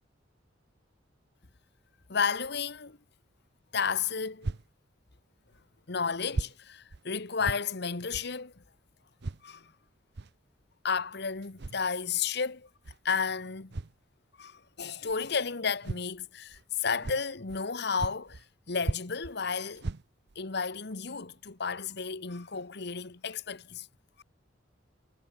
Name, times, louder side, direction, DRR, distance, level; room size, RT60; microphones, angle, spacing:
voice 1, 2.1-3.0 3.7-4.5 5.9-8.6 9.4-9.7 10.8-12.7 13.0-13.8 14.4-19.9 20.3-23.9, left 5 dB, 60° left, 1.3 m, -32 dB
sound 1, 4.4-4.7 5.5-5.6 6.3-6.5 6.9-7.0 7.4-7.6 8.1-8.3 9.2-9.4 10.1-10.3 11.4-11.8 12.8-13.0 13.7-14.0 15.1-15.2 15.8-16.1 16.5-16.6 17.0-17.7 18.0-18.5 18.8-19.3 19.7-20.4 20.9-21.0 21.5-21.6, right 3 dB, 60° right, 0.7 m, -36 dB
head